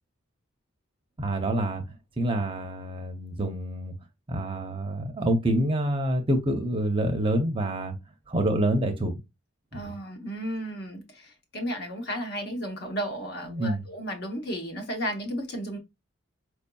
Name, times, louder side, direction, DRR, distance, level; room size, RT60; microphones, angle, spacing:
voice 1, 1.2-1.8 2.2-3.9 4.3-7.9 8.3-9.1 9.7-9.9 13.5-13.8, right 1 dB, 25° right, 0.6 m, -27 dB
voice 2, 9.7-15.8, equal, 50° left, 0.9 m, -34 dB
4.8 x 2.7 x 2.2 m
head